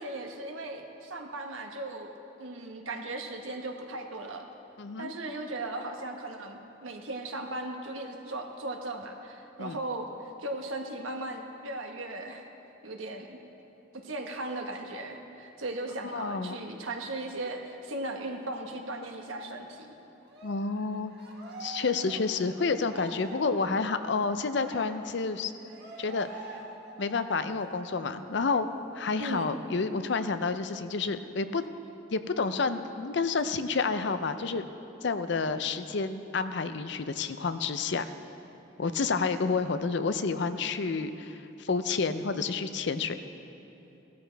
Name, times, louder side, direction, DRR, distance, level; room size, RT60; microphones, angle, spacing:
voice 1, 0.0-2.1 2.4-4.4 5.0-10.1 10.4-12.4 12.8-13.4 14.0-19.9 29.2-29.6, right 2 dB, 80° right, 3 dB, 1.3 m, -37 dB
voice 2, 4.8-5.1 9.6-9.8 16.1-16.6 20.4-21.1 21.6-25.5 26.0-26.6 27.0-28.7 28.9-31.6 32.1-34.6 35.0-38.1 38.8-43.2, left 4 dB, 60° left, 10 dB, 0.5 m, -29 dB
Cheering, 20.3-28.2 28.6-28.8 29.2-30.2, right 3 dB, 55° right, 1.6 m, -46 dB
17.5 x 13.0 x 3.4 m, 2.9 s
head